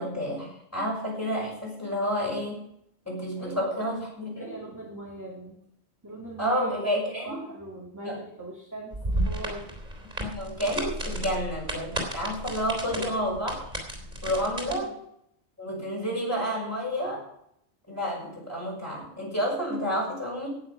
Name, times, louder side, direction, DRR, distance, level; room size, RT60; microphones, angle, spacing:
voice 1, 0.0-2.6 3.0-4.5 6.4-7.4 8.0-8.2 10.2-13.6 14.2-14.9 15.6-17.2 17.9-20.5, equal, 15° left, -3 dB, 6.3 m, -30 dB
voice 2, 3.4-4.1 4.3-5.6 6.0-6.9 7.2-9.0 9.2-9.7 12.8-13.2 14.6-14.9, right 1 dB, 15° right, -4 dB, 2.5 m, -40 dB
sound 1, 8.9-14.7, right 1 dB, 40° right, 3.7 m, -33 dB
18.0 x 7.5 x 5.9 m, 0.74 s
omnidirectional pair, 1.1 m